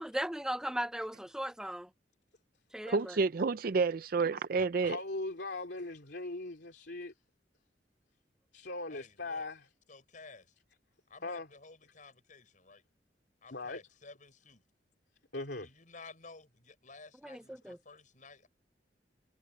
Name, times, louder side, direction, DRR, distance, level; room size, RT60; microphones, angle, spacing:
voice 1, 0.0-1.9 2.7-3.2 17.2-17.8, right 1 dB, 5° right, 0.5 m, -37 dB
voice 2, 2.8-5.0, right 4 dB, 55° right, 0.5 m, -29 dB
voice 3, 4.6-7.1 8.5-9.7 11.2-11.5 13.5-13.8 15.3-15.7, left 2 dB, 75° left, 2.9 m, -40 dB
voice 4, 8.9-9.5 9.9-10.5 11.1-12.8 13.4-14.6 15.6-18.5, left 3 dB, 50° left, 6.3 m, -54 dB
head